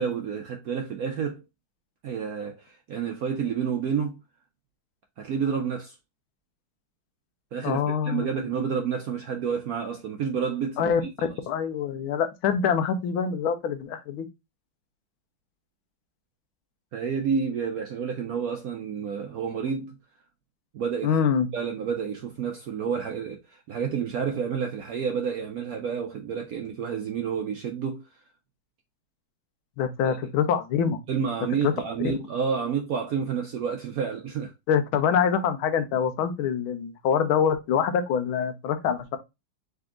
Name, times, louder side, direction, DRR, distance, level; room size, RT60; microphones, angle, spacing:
voice 1, 0.0-1.4 2.0-4.2 5.2-6.0 7.5-11.3 16.9-19.9 20.7-21.2 21.5-28.1 30.0-30.2 31.1-34.5, right 6 dB, 70° right, 0.8 m, -29 dB
voice 2, 7.6-8.5 10.8-11.0 11.5-14.3 21.0-21.5 29.8-31.0 31.6-31.7 32.0-32.1 34.7-39.2, left 7 dB, 85° left, 1.6 m, -25 dB
3.9 x 3.4 x 3.6 m
omnidirectional pair, 2.2 m